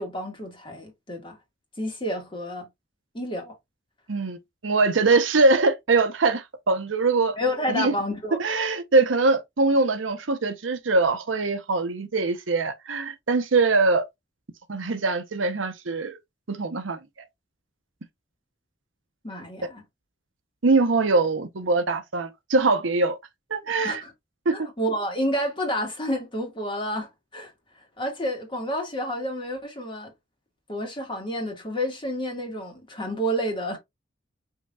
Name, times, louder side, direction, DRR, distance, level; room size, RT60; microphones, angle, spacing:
voice 1, 0.0-1.4 1.8-2.7 3.1-3.5 7.4-8.4 19.2-19.8 23.8-24.1 24.5-27.5 28.0-30.1 30.7-33.8, equal, 25° left, 1.8 m, -29 dB
voice 2, 4.6-7.4 7.7-7.9 8.4-14.1 14.7-16.2 16.5-17.0 20.6-23.2 23.5-24.0 24.5-24.6, right 3 dB, 85° right, 0.8 m, -22 dB
5.4 x 3.8 x 2.3 m
head